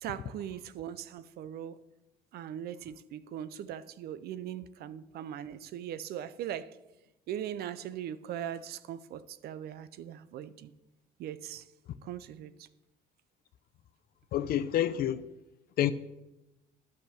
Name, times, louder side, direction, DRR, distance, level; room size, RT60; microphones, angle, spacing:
voice 1, 0.0-1.9 2.3-6.8 7.3-10.7 11.2-11.7 12.0-12.7, right 10 dB, 70° right, 0.6 m, -40 dB
voice 2, 14.3-15.2 15.8-15.9, left 11 dB, 65° left, 0.6 m, -28 dB
10.5 x 6.0 x 6.6 m
cardioid pair, 110°, 17 cm